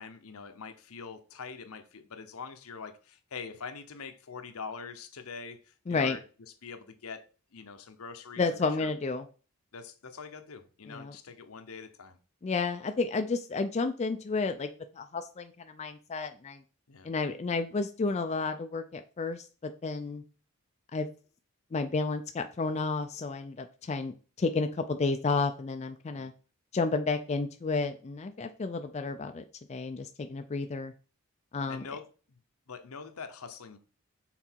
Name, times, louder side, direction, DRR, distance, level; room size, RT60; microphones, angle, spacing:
voice 1, 0.0-6.2 6.6-7.3 7.5-8.9 9.7-12.2 16.9-17.1 26.2-26.3 31.7-32.0 32.3-32.4 32.7-33.8, left 5 dB, 75° left, 0.8 m, -44 dB
voice 2, 5.9-6.2 8.4-9.3 10.9-11.2 12.4-14.7 14.9-16.6 17.0-20.2 20.9-21.1 21.7-26.3 26.7-30.9 31.5-31.9, left 3 dB, 30° left, 0.3 m, -31 dB
5.9 x 3.9 x 4.4 m
head